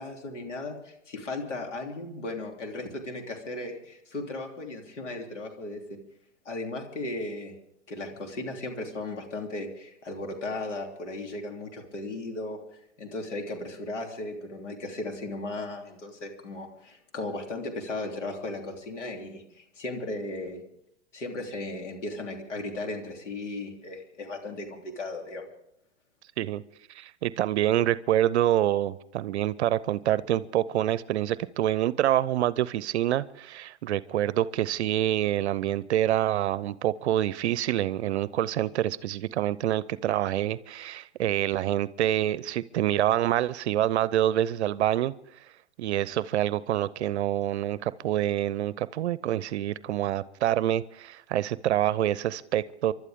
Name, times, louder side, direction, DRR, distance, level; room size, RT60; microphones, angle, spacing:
voice 1, 0.0-6.0 6.4-7.5 7.9-12.6 13.0-20.6 21.1-25.5, left 2 dB, 85° left, 2 dB, 3.4 m, -36 dB
voice 2, 26.9-45.1 45.8-52.9, right 12 dB, 70° right, 18 dB, 0.6 m, -26 dB
29.0 x 12.0 x 3.6 m, 0.75 s
hypercardioid pair, 120°, 35 cm